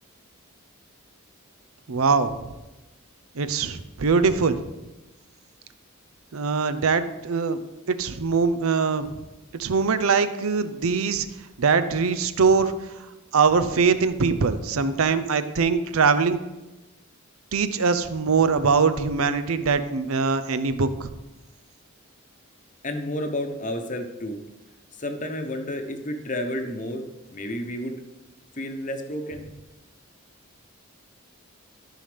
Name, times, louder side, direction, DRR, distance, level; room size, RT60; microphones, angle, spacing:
voice 1, 1.9-2.4 3.3-4.6 6.3-7.6 7.9-9.2 9.5-11.3 11.6-12.7 13.3-16.4 17.5-21.1, right 5 dB, 75° right, 11 dB, 0.6 m, -22 dB
voice 2, 22.8-24.4 24.9-28.0 28.6-29.5, left 1 dB, 35° left, 5 dB, 0.9 m, -31 dB
13.0 x 5.7 x 3.4 m, 1.0 s
head